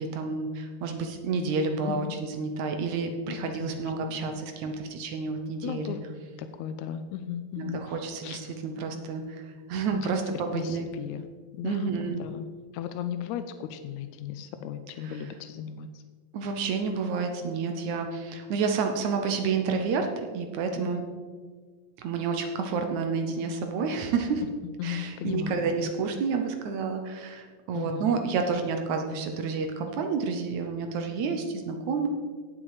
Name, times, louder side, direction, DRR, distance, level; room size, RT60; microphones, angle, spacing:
voice 1, 0.0-6.0 7.6-10.9 11.6-12.2 15.0-15.2 16.3-21.0 22.0-24.4 24.8-32.1, right 5 dB, 75° right, 5 dB, 2.3 m, -30 dB
voice 2, 1.9-2.2 3.3-4.4 5.6-6.0 6.4-8.0 8.2-8.4 9.9-10.1 10.5-11.3 11.5-12.5 12.7-16.0 24.8-25.9 27.7-28.1, left 9 dB, 85° left, 9 dB, 2.0 m, -36 dB
17.5 x 7.2 x 4.9 m, 1.5 s
omnidirectional pair, 3.4 m